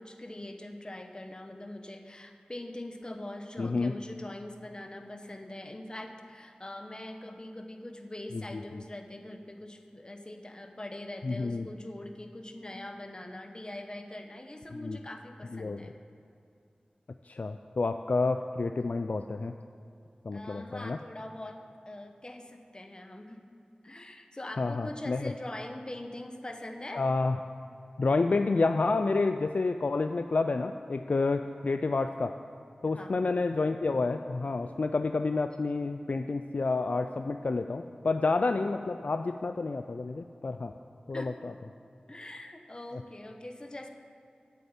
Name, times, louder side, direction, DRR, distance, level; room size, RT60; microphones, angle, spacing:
voice 1, 0.0-15.9 20.3-21.6 21.9-23.4 23.8-27.0 32.9-33.1 41.1-41.3 42.1-43.9, left 1 dB, 30° left, 5 dB, 0.9 m, -43 dB
voice 2, 3.6-4.0 8.3-8.8 11.2-11.7 14.8-15.0 15.5-15.8 17.2-19.5 20.2-21.0 24.6-25.3 26.9-27.4 28.0-32.3 32.8-40.7 41.1-41.5, left 3 dB, 60° left, 8 dB, 0.3 m, -29 dB
8.4 x 6.8 x 8.1 m, 2.6 s
wide cardioid pair, 65°, 3 cm